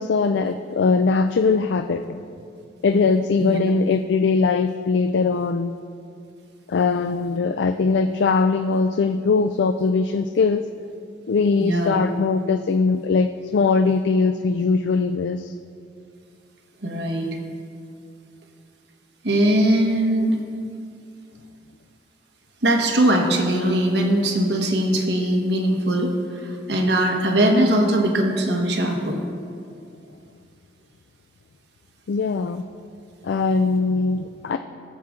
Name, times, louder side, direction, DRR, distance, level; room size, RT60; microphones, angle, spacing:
voice 1, 0.0-2.2 2.8-5.7 6.7-10.6 11.3-15.5 32.1-32.6 33.2-34.6, left 4 dB, 80° left, 8 dB, 0.4 m, -21 dB
voice 2, 11.6-12.0 16.8-17.3 19.2-20.4 22.6-26.1 26.4-29.2, right 1 dB, 70° right, 2 dB, 1.3 m, -20 dB
17.5 x 7.3 x 3.7 m, 2.4 s
head